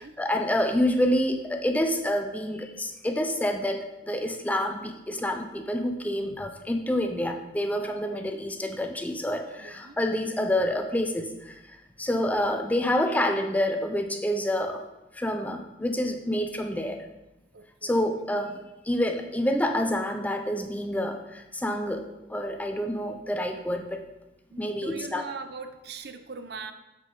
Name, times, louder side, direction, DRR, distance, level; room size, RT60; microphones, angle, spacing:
voice 1, 0.0-11.5 12.0-14.8 15.2-17.0 17.8-18.6 18.9-24.0 24.6-25.2, left 1 dB, 10° left, 5 dB, 0.5 m, -28 dB
voice 2, 9.6-10.0 17.5-18.0 24.5-26.7, right 4 dB, 65° right, 9 dB, 0.6 m, -41 dB
7.4 x 6.4 x 3.8 m, 1.0 s
head